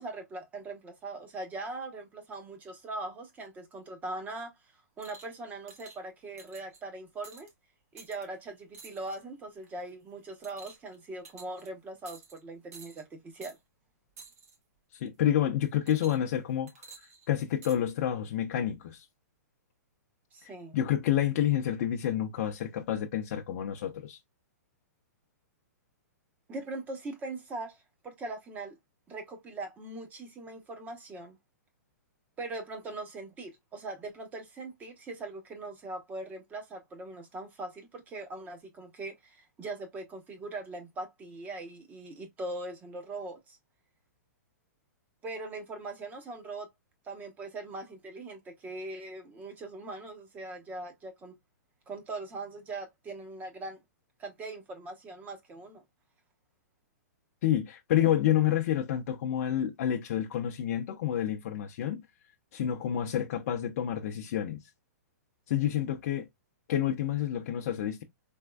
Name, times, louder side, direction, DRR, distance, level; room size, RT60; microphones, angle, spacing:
voice 1, 0.0-4.6 5.0-7.5 7.9-13.6 20.3-20.8 26.5-28.8 29.1-31.4 32.4-43.6 45.2-46.7 47.0-51.3 51.9-53.8 54.2-55.8, right 2 dB, 15° right, 0.8 m, -41 dB
sound 1, 5.0-5.3 5.7-6.0 6.4-6.8 7.2-7.5 8.0-8.2 8.7-9.2 9.6-9.9 10.4-10.9 11.2-11.7 12.0-12.4 12.7-13.0 13.4-13.6 14.2-14.5 15.9-16.4 16.7-17.8 18.6-18.7, right 5 dB, 60° right, 1.4 m, -51 dB
voice 2, 14.9-16.9 17.3-19.1 20.4-24.2 57.4-62.0 62.5-64.7 65.5-66.3 66.7-68.0, left 11 dB, 55° left, 0.5 m, -29 dB
3.5 x 3.0 x 2.2 m
hypercardioid pair, 135°, 9 cm